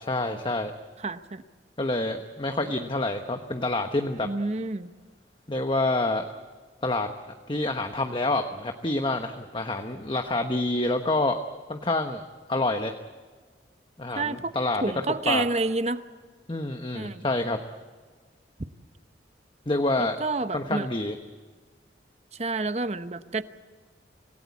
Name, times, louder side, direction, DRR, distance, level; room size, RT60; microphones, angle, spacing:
voice 1, 0.1-0.7 1.8-4.3 5.5-6.2 6.8-7.1 7.5-11.4 11.7-12.2 12.5-12.9 14.0-14.8 15.3-15.5 16.5-17.6 19.7-20.2 20.5-21.2, left 2 dB, 30° left, 6 dB, 1.0 m, -27 dB
voice 2, 1.0-1.4 4.2-4.9 14.2-14.5 14.8-16.0 16.9-17.2 20.0-20.9 22.4-23.4, right 3 dB, 35° right, 12 dB, 0.9 m, -29 dB
26.0 x 17.5 x 8.4 m, 1.5 s
head